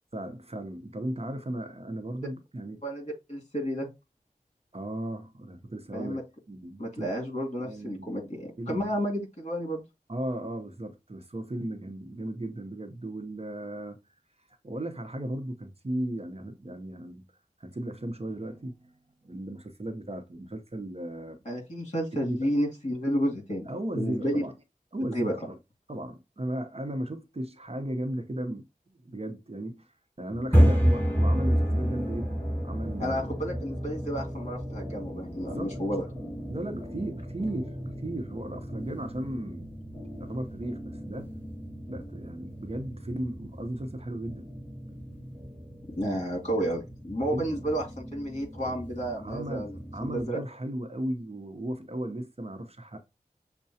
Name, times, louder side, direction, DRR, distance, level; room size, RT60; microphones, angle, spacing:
voice 1, 0.1-2.8 4.7-7.1 7.6-8.1 8.6-8.9 10.1-14.0 14.6-17.2 17.6-18.9 19.2-21.4 22.3-22.5 23.7-24.5 24.9-25.6 25.9-28.7 29.0-29.9 30.2-33.3 35.4-35.8 36.5-39.7 40.2-41.3 41.9-44.4 45.9-46.6 47.3-47.7 48.6-48.7 49.2-53.0, right 1 dB, 45° right, 0.8 m, -36 dB
voice 2, 2.8-3.9 5.9-6.2 6.8-9.8 21.4-23.6 23.9-24.4 25.1-25.3 33.0-36.0 45.9-50.4, equal, 50° left, 2.3 m, -31 dB
sound 1, 30.3-50.2, equal, 15° left, 1.8 m, -31 dB
6.5 x 2.2 x 2.8 m
wide cardioid pair, 45°, 15 cm